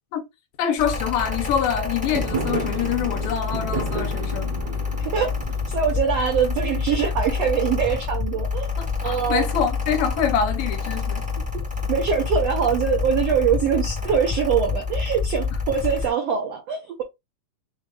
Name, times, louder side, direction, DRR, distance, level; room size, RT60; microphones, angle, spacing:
voice 1, 0.6-4.6 8.8-11.2, left 8 dB, 80° left, 2.2 m, -25 dB
Mechanical fan, 0.8-16.1, left 5 dB, 5° right, 0.7 m, -27 dB
Fireworks, 2.0-7.2, right 5 dB, 65° right, 1.8 m, -32 dB
voice 2, 4.9-5.3 5.7-8.7 9.0-9.5 11.9-17.0, right 7 dB, 85° right, 1.4 m, -23 dB
5.9 x 2.4 x 3.3 m
omnidirectional pair, 4.3 m